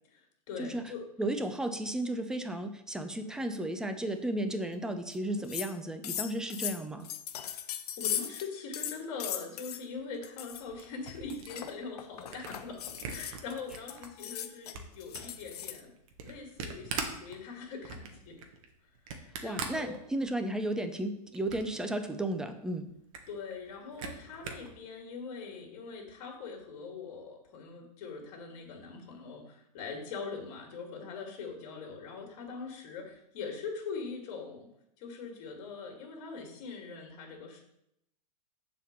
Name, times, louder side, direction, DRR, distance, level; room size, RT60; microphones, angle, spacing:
voice 1, 0.1-1.0 8.0-15.9 16.2-18.4 19.1-20.0 23.3-34.7 35.0-37.6, left 4 dB, 50° left, 1 dB, 2.7 m, -42 dB
voice 2, 1.2-7.1 19.4-22.9, right 1 dB, 5° right, 8 dB, 0.6 m, -34 dB
sound 1, 5.1-5.2 5.4-5.7 6.0-8.5 8.7-9.8 10.2-10.6 11.1-15.8, left 10 dB, 70° left, 0.8 m, -38 dB
Camera, 10.4-14.1 14.5-20.5 20.9-21.8 22.2-22.3 22.5-22.6 22.9-24.7, right 5 dB, 55° right, 1.4 m, -42 dB
7.2 x 4.2 x 6.8 m, 0.79 s
hypercardioid pair, 130°, 21 cm